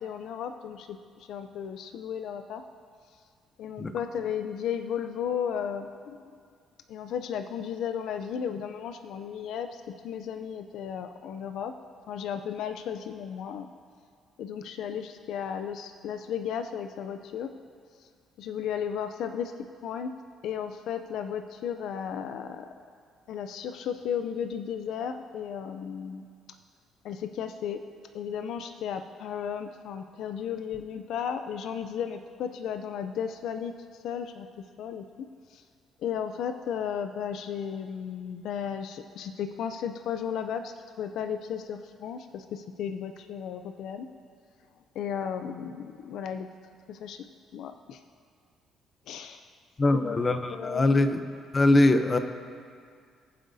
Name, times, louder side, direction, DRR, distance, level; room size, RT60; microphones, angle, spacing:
voice 1, 0.0-2.6 3.6-6.2 6.9-11.7 12.1-13.7 14.4-17.5 18.4-19.5 19.8-20.1 20.4-22.7 23.3-26.3 27.0-27.8 28.1-33.7 34.0-34.5 34.8-35.0 35.5-35.6 36.0-44.1 45.0-46.5 46.9-47.2 47.5-48.0 49.1-49.4 49.9-50.2 50.5-50.8, left 8 dB, 70° left, 8 dB, 0.4 m, -34 dB
voice 2, 49.8-51.2 51.5-52.2, left 2 dB, 25° left, 8 dB, 0.6 m, -22 dB
21.5 x 7.6 x 2.7 m, 2.1 s
cardioid pair, 135°, 0 cm